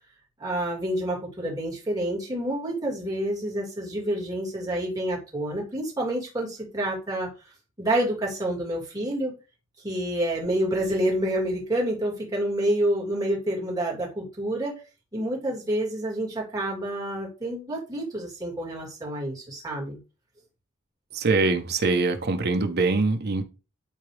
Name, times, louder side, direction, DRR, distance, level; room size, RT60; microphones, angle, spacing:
voice 1, 0.4-7.3 7.8-9.3 9.8-14.7 15.1-20.0, right 1 dB, 20° right, 3.2 m, -28 dB
voice 2, 21.1-23.4, right 3 dB, 55° right, 1.0 m, -23 dB
12.0 x 4.0 x 3.4 m
head